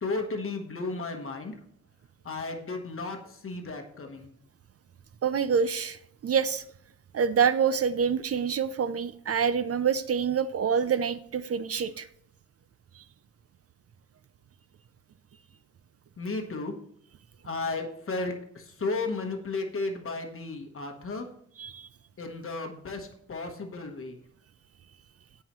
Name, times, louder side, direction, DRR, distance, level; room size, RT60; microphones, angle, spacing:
voice 1, 0.0-1.6 2.2-4.3 16.2-16.7 17.4-21.3 22.2-24.2, left 3 dB, 45° left, 3 dB, 1.2 m, -34 dB
voice 2, 5.2-6.6 7.1-12.1 13.0-13.1 21.6-21.9, right 7 dB, 55° right, 13 dB, 0.5 m, -26 dB
17.0 x 5.7 x 3.1 m, 0.66 s
wide cardioid pair, 160°, 29 cm